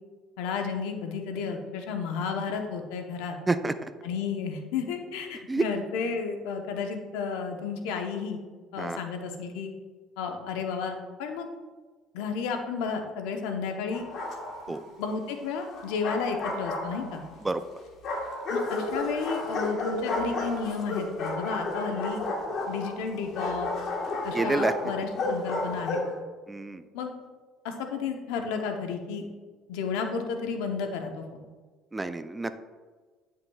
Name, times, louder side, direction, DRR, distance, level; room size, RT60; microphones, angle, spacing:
voice 1, 0.4-3.4 4.0-8.4 8.7-9.7 10.2-11.5 12.1-14.1 14.7-17.2 18.5-22.2 22.7-23.7 24.2-26.0 26.9-27.1 27.6-29.3 29.7-31.5, left 5 dB, 90° left, 4 dB, 0.8 m, -32 dB
voice 2, 3.5-3.9 5.5-5.6 8.8-9.0 14.7-14.8 17.4-17.6 24.3-24.7 26.5-26.8 31.9-32.6, right 3 dB, 15° right, 11 dB, 0.4 m, -28 dB
Bark, 13.9-14.8 15.7-17.3 18.0-26.2, left 2 dB, 55° left, 1.4 m, -32 dB
9.7 x 5.6 x 2.3 m, 1.4 s
supercardioid pair, 100°, 0 cm